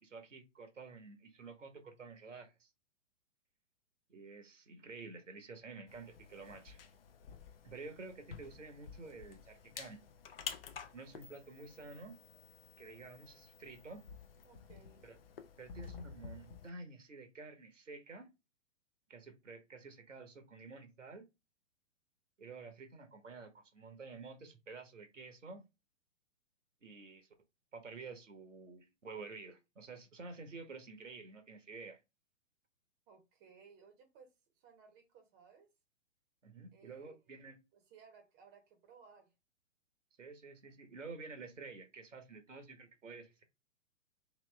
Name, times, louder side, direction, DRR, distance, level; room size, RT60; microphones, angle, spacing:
voice 1, 0.0-2.7 4.1-6.8 7.6-10.0 10.9-12.2 12.8-14.0 15.0-15.2 15.6-18.3 19.1-21.2 22.4-25.6 26.8-27.3 27.7-32.0 36.4-37.6 40.2-43.4, right 4 dB, 75° right, 0.9 m, -50 dB
sound 1, 5.9-16.7, left 7 dB, 50° left, 0.6 m, -51 dB
voice 2, 14.4-15.1 33.1-34.3 34.5-35.7 36.7-37.4 37.7-39.3, right 6 dB, 20° right, 0.8 m, -61 dB
3.0 x 3.0 x 3.1 m
figure-of-eight pair, 110°, 38 cm